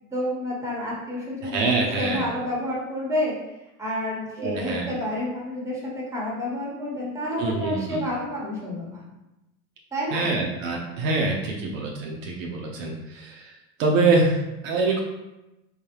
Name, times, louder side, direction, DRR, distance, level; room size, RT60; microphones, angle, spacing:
voice 1, 0.0-3.3 3.8-9.0 9.9-10.4 11.4-11.7, left 1 dB, 5° right, -4 dB, 1.1 m, -29 dB
voice 2, 1.4-2.3 4.4-4.9 7.4-8.0 10.1-15.0, right 3 dB, 60° right, -1 dB, 0.7 m, -25 dB
4.0 x 2.2 x 2.9 m, 0.96 s
figure-of-eight pair, 80°, 44 cm